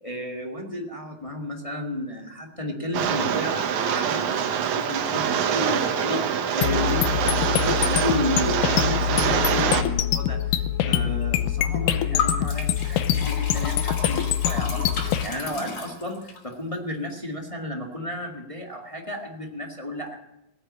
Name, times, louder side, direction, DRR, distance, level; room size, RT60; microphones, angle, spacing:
voice 1, 0.0-20.2, left 1 dB, 15° left, 0 dB, 1.0 m, -32 dB
Rain, 2.9-9.8, right 8 dB, 70° right, 2.3 m, -25 dB
sound 1, 6.6-15.2, left 11 dB, 80° left, 2.3 m, -24 dB
Liquid, 12.2-16.4, left 5 dB, 60° left, 4.1 m, -32 dB
19.5 x 8.7 x 8.6 m, 0.91 s
omnidirectional pair, 3.7 m